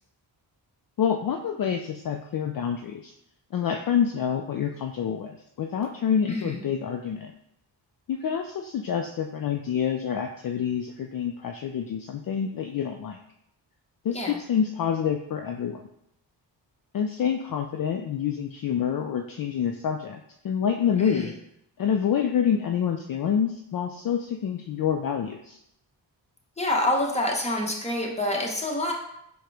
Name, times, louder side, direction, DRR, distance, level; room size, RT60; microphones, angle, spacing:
voice 1, 1.0-3.1 3.5-7.3 8.1-13.2 14.0-15.8 16.9-21.3 21.8-25.6, left 8 dB, 50° left, 4 dB, 0.4 m, -27 dB
voice 2, 6.3-6.6 14.1-14.4 21.0-21.3 26.6-28.9, left 1 dB, 15° left, -1 dB, 1.1 m, -27 dB
4.7 x 2.2 x 4.7 m, 0.76 s
cardioid pair, 55°, 45 cm